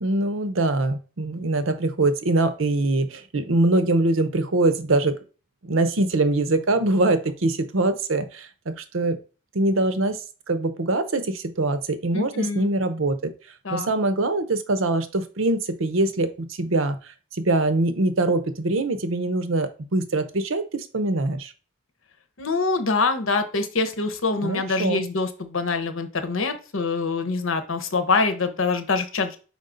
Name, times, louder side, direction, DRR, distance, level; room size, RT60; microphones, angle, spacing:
voice 1, 0.0-5.2 5.6-9.2 9.5-10.2 10.5-13.3 13.7-21.5 24.4-25.0, right 2 dB, 85° right, 11 dB, 0.8 m, -23 dB
voice 2, 12.1-12.7 13.6-13.9 22.4-29.4, left 4 dB, 90° left, 8 dB, 0.9 m, -25 dB
5.2 x 4.7 x 3.9 m, 0.36 s
head